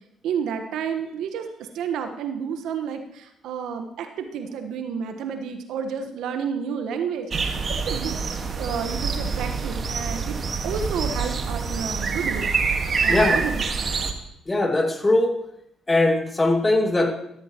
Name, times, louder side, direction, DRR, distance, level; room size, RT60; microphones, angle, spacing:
voice 1, 0.2-8.2 8.6-10.4 10.6-13.7, right 7 dB, 70° right, 6 dB, 1.3 m, -31 dB
sound 1, 7.3-14.1, right 5 dB, 45° right, 1.6 m, -26 dB
voice 2, 13.1-13.4 14.5-15.4 15.9-17.1, left 2 dB, 20° left, 3 dB, 2.3 m, -20 dB
14.5 x 13.5 x 3.0 m, 0.77 s
hypercardioid pair, 50°, 0 cm